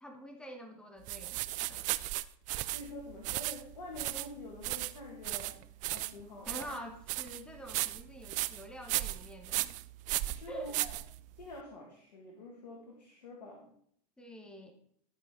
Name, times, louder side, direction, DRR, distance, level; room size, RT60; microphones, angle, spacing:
voice 1, 0.0-1.9 6.5-9.7 10.5-10.7 14.2-14.7, right 1 dB, 5° left, 4 dB, 1.2 m, -46 dB
sound 1, 1.1-11.5, right 18 dB, 35° right, 0.4 m, -36 dB
voice 2, 2.7-5.6 5.9-6.6 10.2-11.0 11.4-13.7, left 2 dB, 75° left, -1 dB, 2.0 m, -47 dB
11.5 x 5.2 x 3.8 m, 0.66 s
hypercardioid pair, 95°, 21 cm